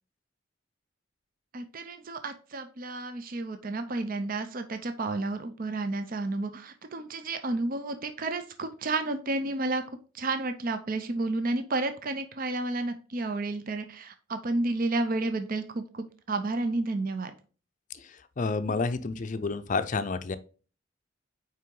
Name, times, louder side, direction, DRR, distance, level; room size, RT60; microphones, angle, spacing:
voice 1, 1.5-9.8 10.1-17.3, right 2 dB, 45° right, 8 dB, 0.6 m, -31 dB
voice 2, 18.4-20.4, left 4 dB, 40° left, 11 dB, 0.5 m, -29 dB
5.6 x 4.7 x 3.8 m, 0.37 s
head